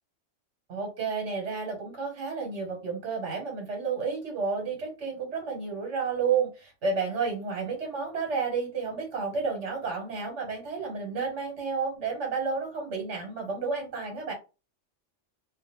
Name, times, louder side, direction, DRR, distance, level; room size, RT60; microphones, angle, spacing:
voice 1, 0.7-14.3, right 5 dB, 70° right, 1.2 m, -31 dB
2.4 x 2.2 x 2.9 m
omnidirectional pair, 1.3 m